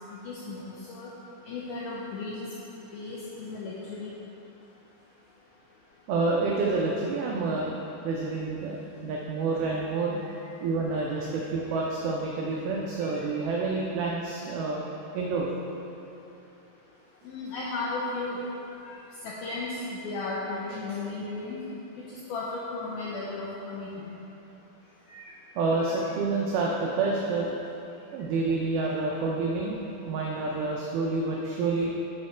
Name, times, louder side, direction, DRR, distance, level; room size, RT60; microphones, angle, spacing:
voice 1, 0.1-1.1 1.5-2.4 2.9-4.1 11.6-11.8 13.0-13.2 17.2-18.4 18.8-19.0 19.2-21.6 22.1-24.1 25.1-25.3 25.8-26.0, left 3 dB, 90° left, -5 dB, 2.1 m, -35 dB
voice 2, 6.1-7.7 8.0-8.8 9.0-10.2 10.6-14.8 15.1-15.5 25.6-27.5 28.1-31.9, right 3 dB, 90° right, -2 dB, 2.1 m, -28 dB
8.6 x 5.6 x 4.4 m, 2.9 s
omnidirectional pair, 5.1 m